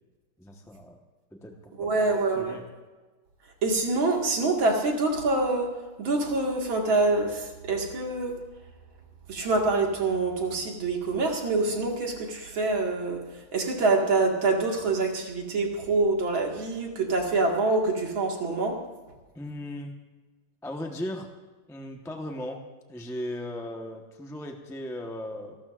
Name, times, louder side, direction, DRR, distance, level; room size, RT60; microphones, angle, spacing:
voice 1, 0.4-1.0 1.3-2.1 2.3-2.7 19.3-19.9 20.6-21.3 21.7-22.6 22.9-25.6, left 1 dB, 5° left, 2 dB, 0.4 m, -37 dB
voice 2, 1.8-2.5 3.6-5.7 6.0-8.3 9.3-13.2 13.5-18.8, right 3 dB, 65° right, 1 dB, 2.7 m, -25 dB
27.5 x 12.5 x 2.5 m, 1.3 s
omnidirectional pair, 2.4 m